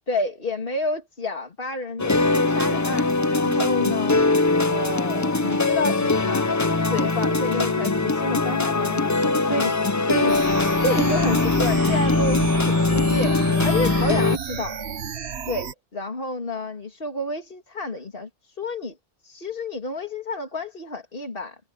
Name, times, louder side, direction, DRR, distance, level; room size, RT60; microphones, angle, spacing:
voice 1, 0.1-4.2 4.7-10.4 10.8-13.4 13.6-14.8 15.4-19.0 19.2-21.6, left 2 dB, 50° left, 2.7 m, -30 dB
sound 1, 2.0-14.4, left 3 dB, 20° left, 0.5 m, -21 dB
sound 2, 10.3-15.7, right 7 dB, 65° right, 1.3 m, -33 dB
omnidirectional pair, 1.2 m